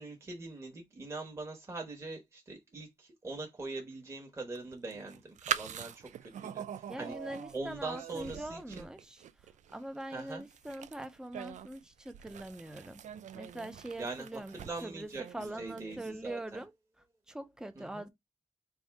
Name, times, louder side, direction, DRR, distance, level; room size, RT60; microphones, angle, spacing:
voice 1, 0.0-7.1 7.5-8.9 10.1-10.4 14.0-14.3 14.6-16.6 17.8-18.1, right 3 dB, 20° right, 1.0 m, -42 dB
sound 1, 4.5-16.3, right 9 dB, 80° right, 0.4 m, -43 dB
voice 2, 6.9-13.0 13.3-16.7 17.3-18.1, right 1 dB, 5° right, 0.5 m, -43 dB
3.5 x 2.6 x 4.6 m
wide cardioid pair, 170°, 12 cm